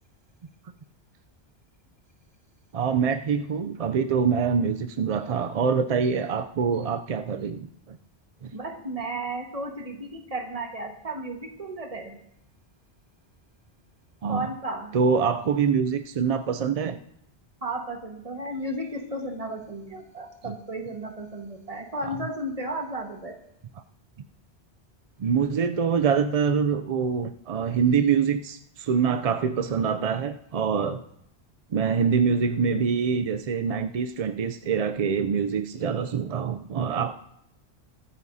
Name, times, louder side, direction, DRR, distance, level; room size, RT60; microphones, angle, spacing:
voice 1, 2.7-8.0 8.4-8.5 14.2-14.5 14.9-17.0 22.1-22.2 25.2-31.0 31.7-37.1, right 6 dB, 55° right, 9 dB, 0.4 m, -25 dB
voice 2, 8.5-12.2 14.3-15.0 17.6-23.4, right 1 dB, 35° right, 3 dB, 1.5 m, -34 dB
22.5 x 9.6 x 2.7 m, 0.77 s
omnidirectional pair, 1.1 m